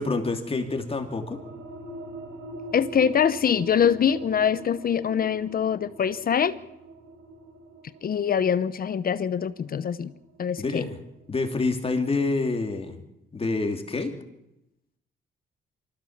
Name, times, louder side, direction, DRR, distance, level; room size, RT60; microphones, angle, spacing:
voice 1, 0.0-1.4 10.6-11.0 11.3-13.0 13.3-14.1, left 3 dB, 30° left, 5 dB, 2.9 m, -27 dB
sound 1, 0.6-11.8, right 2 dB, 85° right, 4.1 m, -43 dB
voice 2, 2.7-6.6 8.0-10.1 10.4-10.9, left 8 dB, 50° left, 15 dB, 0.9 m, -24 dB
25.0 x 15.0 x 7.4 m, 0.87 s
cardioid pair, 90°, 20 cm